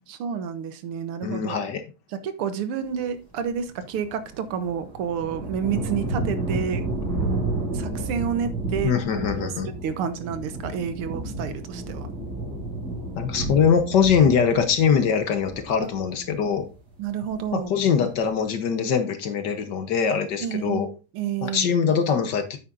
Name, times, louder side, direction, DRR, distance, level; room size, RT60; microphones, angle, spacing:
voice 1, 0.0-1.6 2.2-6.9 7.7-12.1 17.0-17.7 20.4-20.9 21.1-21.8, right 7 dB, 85° right, 11 dB, 1.9 m, -30 dB
voice 2, 1.2-1.8 8.8-9.7 13.2-16.7 17.5-20.9 21.4-22.6, left 6 dB, 60° left, 9 dB, 1.5 m, -22 dB
sound 1, 4.0-16.8 17.1-17.8, right 2 dB, 45° right, 3.0 m, -31 dB
9.5 x 8.3 x 2.6 m, 0.29 s
omnidirectional pair, 2.3 m